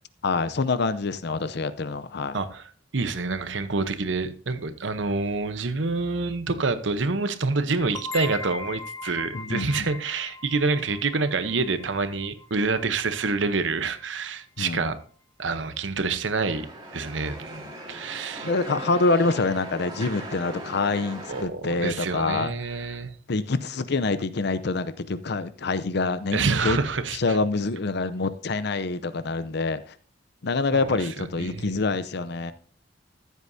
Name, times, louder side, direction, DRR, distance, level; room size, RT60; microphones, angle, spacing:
voice 1, 0.2-2.4 9.3-9.9 14.6-14.9 18.4-22.5 23.3-26.8 27.1-29.9 30.4-32.5, left 3 dB, 60° left, 0.7 m, -26 dB
voice 2, 2.3-15.0 15.4-16.7 16.9-18.5 21.3-23.1 26.3-27.4 30.7-31.9, right 3 dB, 75° right, 0.9 m, -27 dB
sound 1, 7.9-13.4, left 4 dB, 20° left, 0.5 m, -39 dB
sound 2, 16.3-21.4, right 1 dB, 25° right, 2.6 m, -39 dB
14.5 x 8.3 x 2.7 m
head